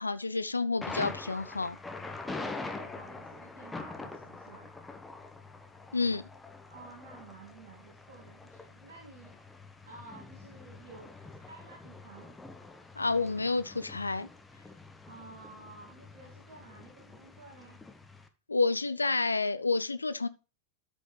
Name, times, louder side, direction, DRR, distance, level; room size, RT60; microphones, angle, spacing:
voice 1, 0.0-1.8 5.9-6.2 13.0-14.3 18.5-20.3, left 3 dB, 80° left, 0.5 m, -29 dB
Thunder, 0.8-18.3, left 3 dB, 10° left, 1.2 m, -45 dB
voice 2, 2.2-4.7 6.7-9.5 9.8-12.4 15.0-17.8, right 3 dB, 55° right, 2.4 m, -52 dB
13.0 x 5.3 x 3.3 m
figure-of-eight pair, 90°, 0 cm